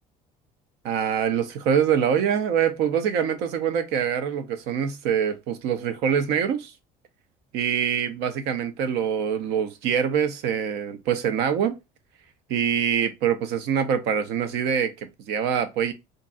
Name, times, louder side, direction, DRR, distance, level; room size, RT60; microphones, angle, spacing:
voice 1, 0.8-6.7 7.5-11.8 12.5-15.9, right 8 dB, 75° right, 0.7 m, -24 dB
2.5 x 2.2 x 3.9 m
supercardioid pair, 95°, 17 cm